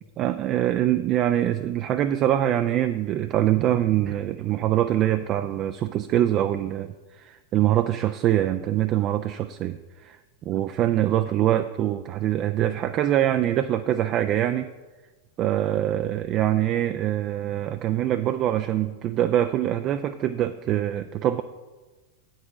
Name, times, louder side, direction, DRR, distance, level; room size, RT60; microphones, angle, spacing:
voice 1, 0.2-10.2 10.5-14.7 15.4-21.4, right 12 dB, 35° right, 10 dB, 0.3 m, -24 dB
8.6 x 6.4 x 4.8 m, 1.2 s
figure-of-eight pair, 90°, 0 cm